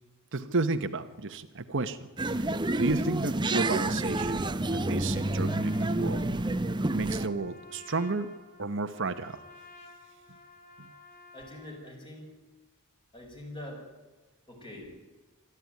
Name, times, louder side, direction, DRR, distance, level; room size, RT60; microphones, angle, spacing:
voice 1, 0.3-4.5 4.7-6.2 6.9-8.3 8.6-9.4 10.8-10.9, right 3 dB, 60° right, 9 dB, 1.1 m, -32 dB
sound 1, 2.2-7.3, right 2 dB, 20° right, 0.8 m, -29 dB
Trumpet, 4.6-11.8, left 3 dB, 45° left, 3.6 m, -53 dB
voice 2, 11.3-12.3 13.1-13.9 14.5-15.0, left 1 dB, 25° left, 1 dB, 6.5 m, -44 dB
26.0 x 13.0 x 9.5 m, 1.2 s
head